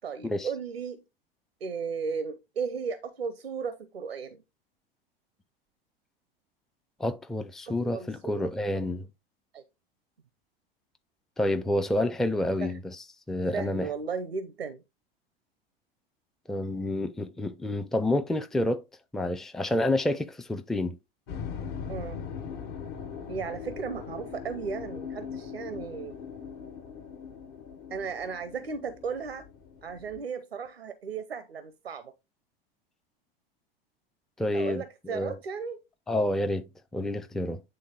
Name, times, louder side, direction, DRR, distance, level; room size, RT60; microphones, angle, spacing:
voice 1, 0.0-1.0 1.6-4.4 7.7-8.8 9.5-9.6 12.6-12.8 13.5-14.8 21.9-22.2 23.3-26.2 27.9-29.5 29.8-32.1 34.5-35.8, right 5 dB, 90° right, 0.7 m, -35 dB
voice 2, 7.0-9.1 11.4-13.0 13.3-13.9 16.5-18.8 19.1-21.0 34.4-35.3 36.1-37.6, left 1 dB, ahead, 0.5 m, -29 dB
sound 1, 21.3-30.2, left 7 dB, 55° left, 1.4 m, -40 dB
8.9 x 3.7 x 3.8 m
figure-of-eight pair, 85°, 29 cm